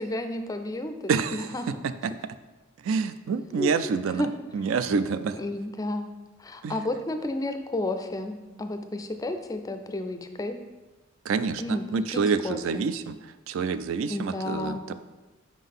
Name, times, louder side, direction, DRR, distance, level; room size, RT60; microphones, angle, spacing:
voice 1, 0.0-1.7 3.5-3.7 4.2-4.3 5.4-10.6 11.6-12.9 14.1-14.9, left 1 dB, 15° left, 7 dB, 0.4 m, -32 dB
voice 2, 1.1-1.5 1.8-2.1 2.8-5.4 6.6-6.8 11.3-14.9, right 5 dB, 70° right, 12 dB, 0.3 m, -27 dB
5.1 x 3.8 x 5.4 m, 1.1 s
head